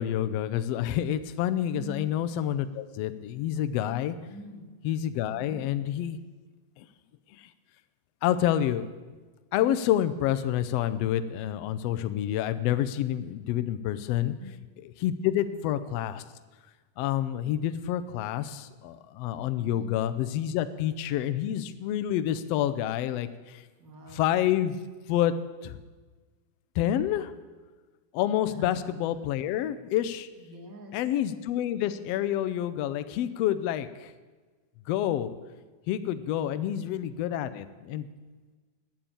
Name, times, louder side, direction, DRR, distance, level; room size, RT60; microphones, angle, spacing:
voice 1, 0.0-4.2 4.8-6.2 6.8-6.9 7.3-7.5 8.2-8.9 9.5-14.3 14.8-16.2 17.0-23.6 24.1-24.8 25.1-25.3 25.6-25.8 26.7-27.3 28.1-30.3 30.9-34.1 34.9-35.3 35.9-38.1, left 11 dB, 85° left, 11 dB, 1.4 m, -28 dB
voice 2, 1.7-2.1 4.3-4.7 5.3-5.6 14.2-14.5 15.3-15.6 19.6-19.9 23.8-24.2 28.5-28.8 30.4-30.9, left 1 dB, 35° right, 2 dB, 1.6 m, -44 dB
9.6 x 8.6 x 8.9 m, 1.3 s
omnidirectional pair, 3.6 m